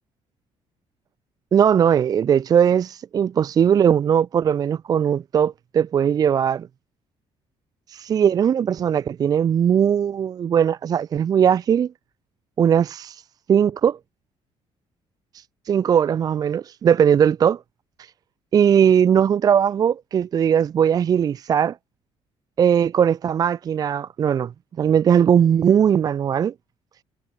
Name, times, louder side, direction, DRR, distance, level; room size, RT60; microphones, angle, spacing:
voice 1, 1.5-6.7 7.9-11.9 12.6-13.2 13.5-14.0 15.3-17.6 18.5-21.8 22.6-24.5 24.8-26.5, right 8 dB, 35° right, 0.6 m, -19 dB
cardioid pair, 160°, 11 cm